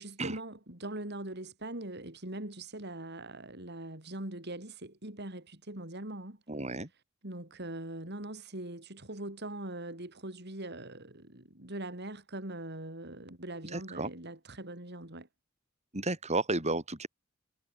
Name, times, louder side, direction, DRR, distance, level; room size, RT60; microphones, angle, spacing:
voice 1, 0.0-6.4 7.2-15.3, right 1 dB, 55° right, 5.1 m, -42 dB
voice 2, 6.5-6.9 13.7-14.1 15.9-17.1, right 2 dB, 35° right, 5.6 m, -32 dB
head